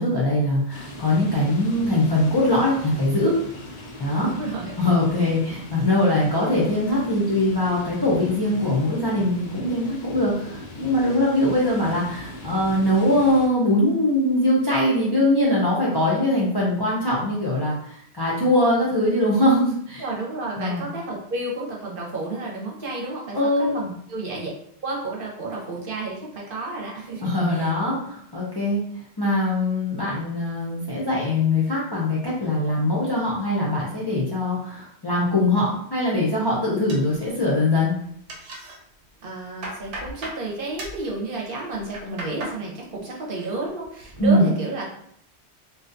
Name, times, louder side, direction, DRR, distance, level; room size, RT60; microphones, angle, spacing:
voice 1, 0.0-3.4 4.0-4.3 4.8-20.0 20.6-20.9 23.3-23.8 27.2-28.8 29.2-38.0 44.2-44.5, left 1 dB, 35° left, -7 dB, 0.4 m, -22 dB
sound 1, 0.7-13.5, left 1 dB, 90° left, 0.9 m, -40 dB
voice 2, 4.2-4.8 20.0-24.5 24.8-27.8 39.2-44.9, right 2 dB, 55° right, -3 dB, 0.8 m, -31 dB
sound 2, 36.9-37.7 38.0-38.8 39.2-40.4 40.8-41.1 41.7-42.6 43.0-43.5 43.8-44.3, right 1 dB, 90° right, 1.0 m, -37 dB
2.6 x 2.2 x 2.6 m, 0.68 s
omnidirectional pair, 1.1 m